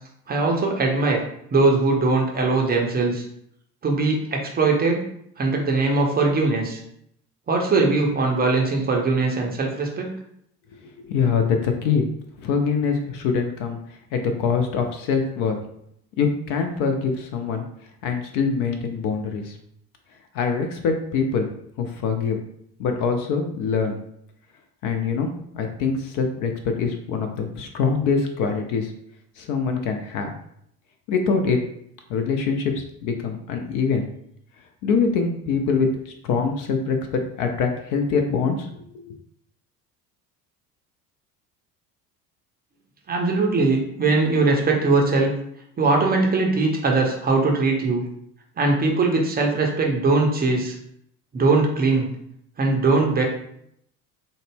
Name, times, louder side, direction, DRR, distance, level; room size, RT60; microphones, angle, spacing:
voice 1, 0.3-1.2 1.5-3.2 3.8-5.0 5.4-6.8 7.5-10.1 43.1-45.3 45.8-48.0 48.6-50.8 51.3-52.1 52.6-53.2, right 3 dB, 20° right, 0 dB, 0.6 m, -20 dB
voice 2, 10.8-12.1 12.4-15.6 16.2-17.6 18.0-19.6 20.3-21.5 21.8-22.4 22.8-24.0 24.8-25.3 25.5-28.9 29.4-30.3 31.1-31.6 32.1-34.1 34.8-38.8, left 5 dB, 45° left, 5 dB, 0.5 m, -24 dB
3.8 x 2.1 x 3.4 m, 0.72 s
figure-of-eight pair, 65°, 49 cm